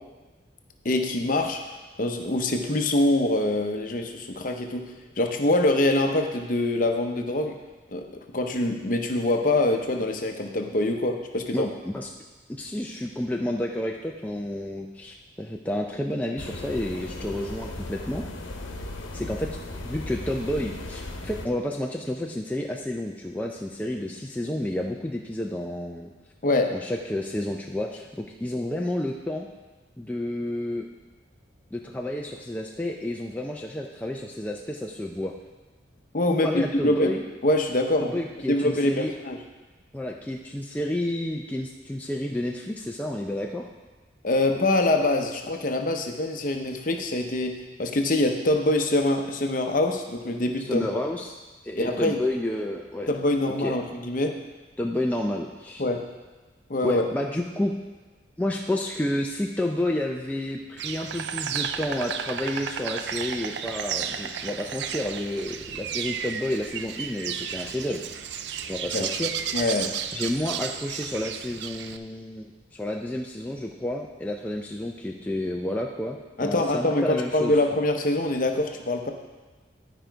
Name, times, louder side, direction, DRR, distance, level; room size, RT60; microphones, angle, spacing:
voice 1, 0.8-1.6 2.0-7.6 7.9-11.7 26.4-26.7 36.1-38.2 38.5-39.4 44.2-47.5 47.8-51.0 51.8-52.2 53.1-54.4 55.8-56.0 56.7-57.0 68.9-69.1 69.5-69.9 76.4-79.1, left 1 dB, 45° left, 4 dB, 0.7 m, -24 dB
voice 2, 11.4-12.1 12.5-18.2 19.1-19.6 19.8-26.1 26.7-29.5 30.0-30.8 31.7-35.3 36.4-37.2 38.0-39.1 39.9-43.6 50.6-51.4 51.6-53.1 53.6-53.7 54.8-55.8 56.8-57.7 58.4-68.0 68.7-69.6 70.1-77.5, left 1 dB, 10° left, 0 dB, 0.4 m, -30 dB
sound 1, 16.4-21.5, left 2 dB, 90° left, 0.9 m, -37 dB
Insect, 60.8-72.0, right 8 dB, 60° right, 0.4 m, -33 dB
11.0 x 5.0 x 4.6 m, 1.3 s
head